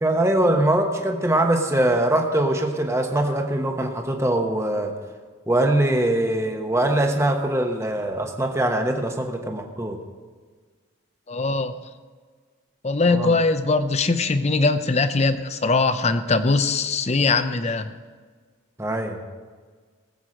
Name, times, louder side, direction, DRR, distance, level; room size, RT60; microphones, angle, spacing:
voice 1, 0.0-4.9 5.5-10.0 13.1-13.3 18.8-19.2, right 1 dB, 15° right, 3 dB, 1.1 m, -22 dB
voice 2, 11.3-11.7 12.8-17.9, left 3 dB, 30° left, 10 dB, 0.6 m, -21 dB
19.0 x 8.2 x 5.1 m, 1.5 s
head